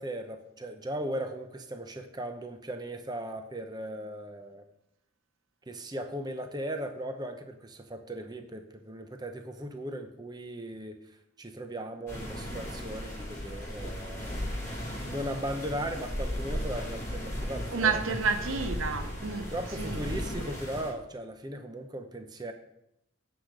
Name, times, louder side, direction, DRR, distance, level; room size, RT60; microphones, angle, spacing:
voice 1, 0.0-4.6 5.7-14.5 15.0-18.2 19.5-22.5, right 1 dB, 20° right, 0.7 m, -38 dB
sound 1, 12.1-20.9, equal, 15° left, 3.1 m, -36 dB
voice 2, 17.7-19.5 19.8-20.0, right 5 dB, 75° right, 0.7 m, -29 dB
10.0 x 4.9 x 6.6 m
head